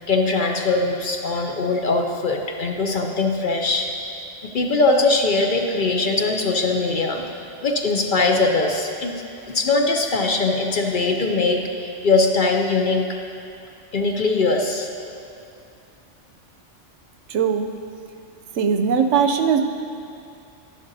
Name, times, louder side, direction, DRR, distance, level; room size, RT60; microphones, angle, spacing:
voice 1, 0.0-3.9 4.4-7.2 7.6-13.0 13.9-14.9, left 3 dB, 55° left, 2 dB, 0.6 m, -21 dB
voice 2, 17.3-17.7 18.5-19.6, right 6 dB, 85° right, 6 dB, 0.9 m, -19 dB
11.5 x 11.0 x 2.6 m, 2.6 s
omnidirectional pair, 1.2 m